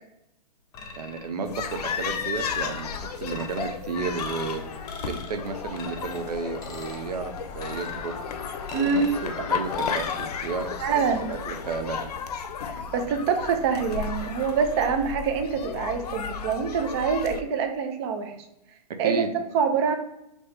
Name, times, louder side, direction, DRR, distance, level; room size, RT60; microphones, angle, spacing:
sound 1, 0.7-1.3 1.7-2.9 3.2-3.7 4.2-4.6 4.9-5.4 5.8-6.2 6.6-7.0 7.6-8.2 8.7-9.2 9.8-10.2, left 4 dB, 20° left, 0.7 m, -41 dB
voice 1, 0.9-4.6 5.1-8.1 8.7-12.1 19.0-19.3, right 4 dB, 90° right, 7 dB, 0.6 m, -33 dB
sound 2, 1.5-17.4, left 6 dB, 80° left, 0.6 m, -34 dB
sound 3, 3.9-12.1, left 4 dB, 45° left, 0.9 m, -42 dB
voice 2, 8.7-9.1 10.8-11.3 12.7-18.3 19.0-19.2 19.5-20.0, right 6 dB, 40° right, 6 dB, 0.6 m, -25 dB
4.4 x 3.0 x 3.3 m, 0.86 s
hypercardioid pair, 145°, 20 cm